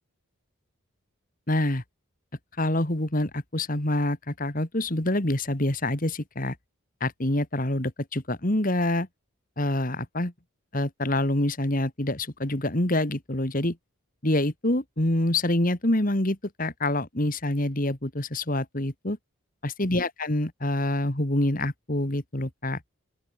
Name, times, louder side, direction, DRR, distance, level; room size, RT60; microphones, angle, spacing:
voice 1, 1.5-1.8 2.6-6.6 7.0-9.1 9.6-10.3 10.7-13.8 14.2-19.2 19.6-22.8, left 1 dB, 40° left, 2.2 m, -26 dB
open air
head